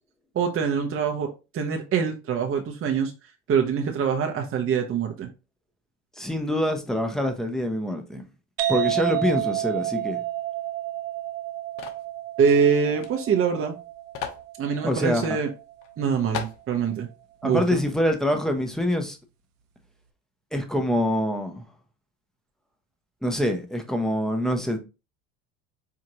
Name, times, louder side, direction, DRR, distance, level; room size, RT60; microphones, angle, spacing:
voice 1, 0.3-3.1 3.5-5.3 12.4-13.8 14.6-15.5 16.0-17.1 17.4-17.8, right 6 dB, 35° right, 0.7 m, -24 dB
voice 2, 6.2-8.2 8.7-10.2 14.8-15.4 17.4-19.2 20.5-21.6 23.2-24.8, left 1 dB, ahead, 0.8 m, -25 dB
sound 1, 8.6-16.0, right 14 dB, 75° right, 0.7 m, -31 dB
sound 2, 11.8-12.1 13.0-13.1 13.4-13.5 14.1-14.4 15.2-15.3 15.8-15.9 16.3-16.6, left 8 dB, 50° left, 0.9 m, -34 dB
4.6 x 2.4 x 2.8 m
hypercardioid pair, 80°, 39 cm